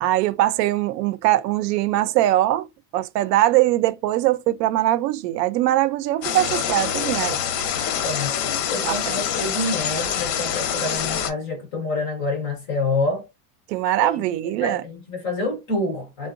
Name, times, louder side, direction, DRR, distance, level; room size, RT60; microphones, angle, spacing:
voice 1, 0.0-2.7 2.9-7.4 8.8-9.2 13.7-14.8, right 14 dB, 90° right, 0.6 m, -21 dB
sound 1, 6.2-11.3, left 8 dB, 80° left, 0.9 m, -25 dB
voice 2, 8.0-8.3 8.7-13.3 14.0-14.2 14.6-16.3, left 2 dB, 25° left, 0.4 m, -27 dB
3.6 x 2.2 x 2.4 m
supercardioid pair, 170°, 47 cm